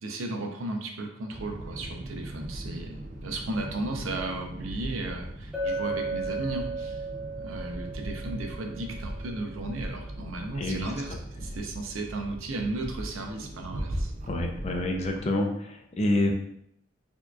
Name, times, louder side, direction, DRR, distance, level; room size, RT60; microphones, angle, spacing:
voice 1, 0.0-7.0 7.4-11.1 11.4-14.1, right 2 dB, 90° right, 3 dB, 0.6 m, -35 dB
sound 1, 1.3-15.3, right 1 dB, 40° right, 0.4 m, -39 dB
Chink clink, 5.5-9.5, right 2 dB, 5° right, 0.8 m, -35 dB
voice 2, 10.6-10.9 14.3-16.3, left 1 dB, 30° left, 2 dB, 0.4 m, -27 dB
4.4 x 2.9 x 2.3 m, 0.72 s
head